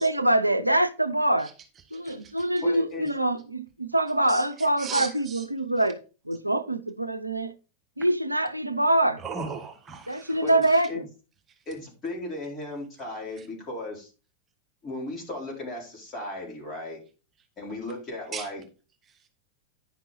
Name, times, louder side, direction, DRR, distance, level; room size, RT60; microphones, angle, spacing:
voice 1, 0.0-1.5 1.9-6.0 6.3-7.5 8.0-9.2 10.1-11.1, right 1 dB, 85° right, 0.5 m, -24 dB
voice 2, 1.9-2.5 4.3-5.5 9.2-10.4 10.7-10.8 13.4-13.5 18.3-18.5 19.1-19.3, right 5 dB, 25° right, 1.4 m, -38 dB
voice 3, 2.6-3.1 10.4-10.6 10.9-11.0 11.7-14.1 14.8-17.0 17.6-18.6, left 2 dB, 25° left, 4.3 m, -36 dB
10.0 x 6.0 x 4.2 m
figure-of-eight pair, 90°, 0 cm